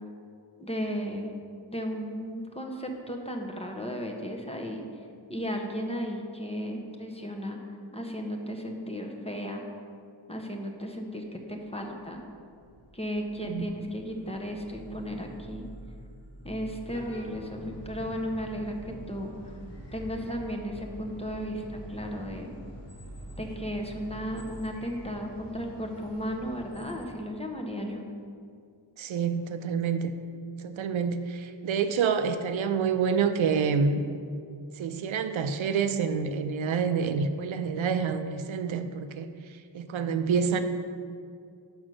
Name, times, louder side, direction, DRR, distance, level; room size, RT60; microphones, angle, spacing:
voice 1, 0.6-1.3 1.7-4.8 5.3-7.6 7.9-9.6 10.3-12.2 12.9-15.7 16.4-18.8 19.1-19.5 19.9-21.6 21.9-22.5 23.4-28.1, equal, 15° left, 1 dB, 0.7 m, -35 dB
sound 1, 11.7-25.1, right 1 dB, 30° left, 1.4 m, -48 dB
sound 2, 16.9-27.1, equal, 60° left, 1.4 m, -47 dB
voice 2, 29.0-30.1 30.6-34.1 34.8-39.3 39.7-40.6, right 6 dB, 80° right, 8 dB, 0.6 m, -27 dB
6.1 x 5.3 x 6.2 m, 2.3 s
wide cardioid pair, 115°, 46 cm